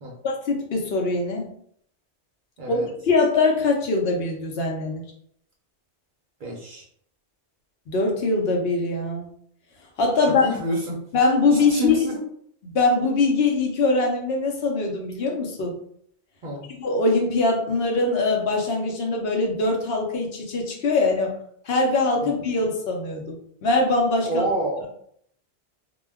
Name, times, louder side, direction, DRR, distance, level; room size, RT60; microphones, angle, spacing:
voice 1, 0.2-1.5 2.7-5.1 7.9-9.3 10.0-10.5 11.1-12.0 12.7-15.7 16.7-21.3 21.6-24.4, left 3 dB, 65° left, 1 dB, 0.8 m, -22 dB
voice 2, 2.6-2.9 6.4-6.8 10.3-11.0 11.5-12.3 16.4-16.7 22.2-22.3 24.2-24.9, right 1 dB, 55° right, -1 dB, 0.6 m, -28 dB
2.2 x 2.1 x 3.4 m, 0.66 s
omnidirectional pair, 1.2 m